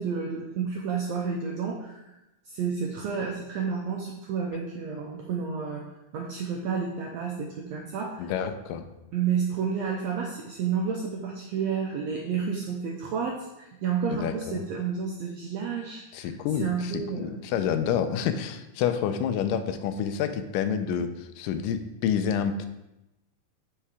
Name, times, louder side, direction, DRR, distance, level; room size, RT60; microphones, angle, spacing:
voice 1, 0.0-2.1 2.4-5.8 6.1-8.3 9.1-17.4, right 6 dB, 80° right, 0 dB, 1.5 m, -31 dB
voice 2, 8.2-8.9 14.1-14.6 16.1-22.7, left 8 dB, 85° left, 9 dB, 2.2 m, -28 dB
5.8 x 5.6 x 4.8 m, 0.94 s
omnidirectional pair, 3.8 m